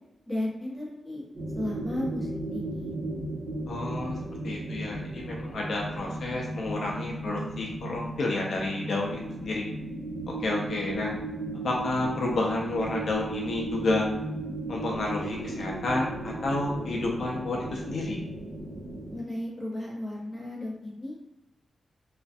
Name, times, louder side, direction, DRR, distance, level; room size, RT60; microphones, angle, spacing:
voice 1, 0.3-1.2 1.6-3.0 19.1-21.2, left 1 dB, 5° left, -6 dB, 0.8 m, -34 dB
sound 1, 1.3-19.2, right 2 dB, 45° right, 1.0 m, -36 dB
voice 2, 3.7-4.2 4.4-9.7 10.4-11.1 11.6-14.1 14.7-18.2, left 2 dB, 60° left, -2 dB, 0.4 m, -30 dB
2.4 x 2.3 x 2.4 m, 0.93 s
wide cardioid pair, 145°, 0 cm